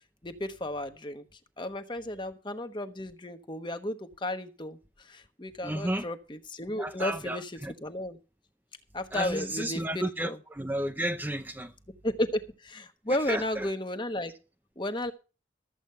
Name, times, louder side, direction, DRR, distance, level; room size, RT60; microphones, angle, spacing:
voice 1, 0.2-1.2 1.6-4.8 5.1-7.5 7.8-8.2 8.9-10.4 12.0-14.3 14.8-15.1, left 1 dB, 25° left, 1.1 m, -33 dB
voice 2, 5.6-6.1 6.8-7.7 9.1-11.7 13.3-13.7, right 1 dB, 10° right, 0.6 m, -32 dB
13.5 x 8.1 x 5.6 m
head